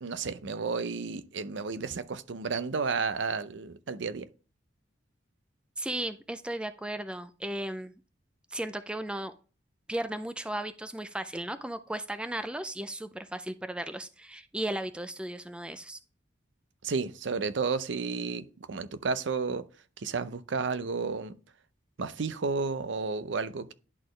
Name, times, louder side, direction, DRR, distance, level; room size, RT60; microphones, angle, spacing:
voice 1, 0.0-4.3 16.8-19.7 20.0-21.3 22.0-23.7, right 4 dB, 70° right, 0.6 m, -32 dB
voice 2, 5.8-7.9 8.5-9.3 9.9-16.0, right 1 dB, 5° right, 0.4 m, -35 dB
11.0 x 4.2 x 3.2 m
head